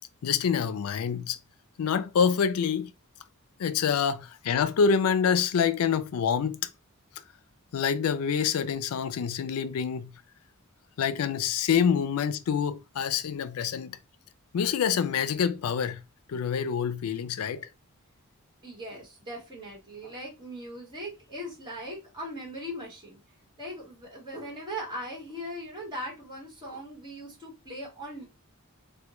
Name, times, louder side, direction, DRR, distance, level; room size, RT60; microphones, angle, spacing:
voice 1, 0.2-1.4 1.8-2.9 3.6-6.7 7.7-10.1 11.0-14.0 14.5-16.0 16.3-17.6, left 7 dB, 70° left, 0.3 m, -26 dB
voice 2, 18.6-23.2 23.6-28.3, equal, 20° right, 1.3 m, -39 dB
3.3 x 2.1 x 3.0 m
head